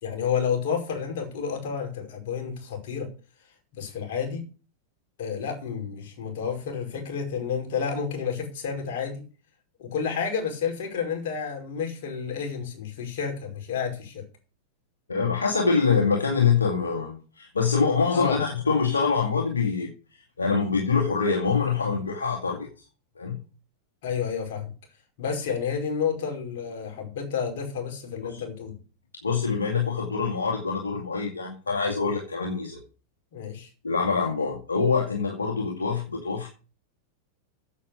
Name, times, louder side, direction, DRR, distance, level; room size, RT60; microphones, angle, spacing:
voice 1, 0.0-3.1 3.7-4.4 5.2-9.2 9.8-14.2 18.1-18.4 24.0-24.7 25.2-28.7 33.3-33.7, left 6 dB, 60° left, 2 dB, 5.2 m, -30 dB
voice 2, 15.1-19.9 20.4-22.7 23.2-23.4 28.3-28.4 29.2-32.8 33.8-36.5, left 5 dB, 85° left, 0 dB, 2.3 m, -25 dB
8.4 x 8.3 x 8.3 m, 0.36 s
hypercardioid pair, 95°, 0 cm